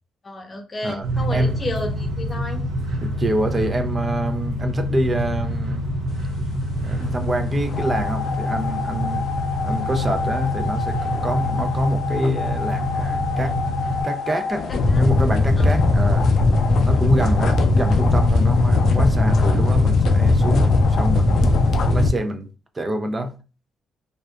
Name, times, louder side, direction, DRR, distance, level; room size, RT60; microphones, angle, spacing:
voice 1, 0.2-2.6 14.9-15.0 15.6-15.7, left 2 dB, 30° left, 0.7 m, -31 dB
voice 2, 0.8-1.6 3.0-5.9 6.8-9.2 9.6-13.6 14.0-14.7 15.0-16.3 16.8-21.5 21.8-23.4, right 1 dB, 25° right, 0.3 m, -26 dB
sound 1, 1.0-14.0, equal, 85° right, 0.6 m, -26 dB
sound 2, 7.7-22.1, left 3 dB, 65° left, 0.4 m, -20 dB
2.7 x 2.2 x 2.2 m
cardioid pair, 90°, 0 cm